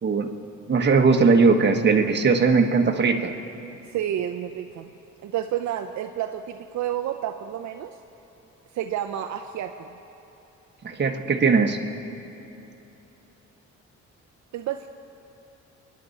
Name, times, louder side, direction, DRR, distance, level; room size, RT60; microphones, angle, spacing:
voice 1, 0.7-3.3 10.8-11.8, right 4 dB, 35° right, 4 dB, 1.3 m, -19 dB
voice 2, 3.9-4.9 5.2-8.0 8.7-10.0 14.5-14.9, right 11 dB, 70° right, 5 dB, 0.6 m, -30 dB
25.0 x 10.5 x 4.2 m, 3.0 s
cardioid pair, 90°, 30 cm